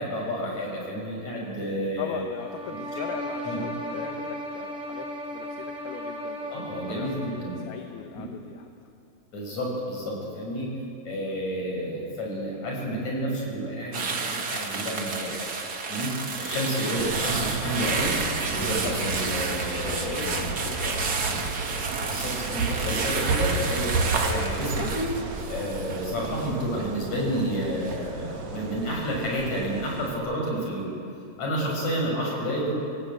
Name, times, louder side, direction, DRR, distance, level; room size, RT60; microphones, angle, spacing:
voice 1, 0.0-2.2 3.4-3.6 6.5-7.6 8.1-8.2 9.3-10.7 11.0-15.5 15.9-16.1 16.4-18.1 18.5-20.5 21.3-21.4 22.1-24.9 25.5-30.9 31.4-32.7, equal, 45° left, -1 dB, 7.4 m, -30 dB
voice 2, 2.0-7.1 7.6-8.9 19.8-21.2, left 9 dB, 75° left, 5 dB, 2.9 m, -39 dB
sound 1, 2.4-7.8, equal, 5° right, 1.0 m, -36 dB
sound 2, 13.9-27.3 27.6-27.9, right 4 dB, 85° right, 0.8 m, -31 dB
sound 3, 17.0-30.1, right 4 dB, 50° right, 2.7 m, -32 dB
26.0 x 18.5 x 9.0 m, 2.6 s
omnidirectional pair, 4.7 m